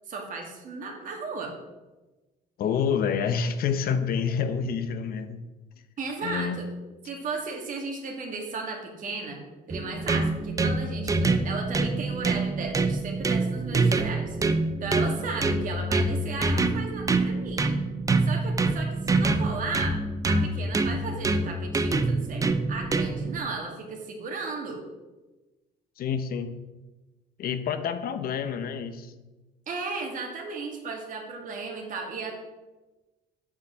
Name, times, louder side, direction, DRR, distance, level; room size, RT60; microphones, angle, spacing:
voice 1, 0.1-1.5 6.0-6.7 7.1-9.4 9.7-14.4 14.8-17.7 18.3-20.0 20.2-24.8 29.7-32.3, right 4 dB, 50° right, 2 dB, 2.2 m, -35 dB
voice 2, 2.6-5.4 6.2-6.7 26.0-26.5 27.4-29.1, left 7 dB, 60° left, 10 dB, 0.9 m, -28 dB
sound 1, 9.7-23.4, right 3 dB, 20° right, 0.7 m, -26 dB
8.5 x 5.7 x 6.2 m, 1.1 s
cardioid pair, 110°, 17 cm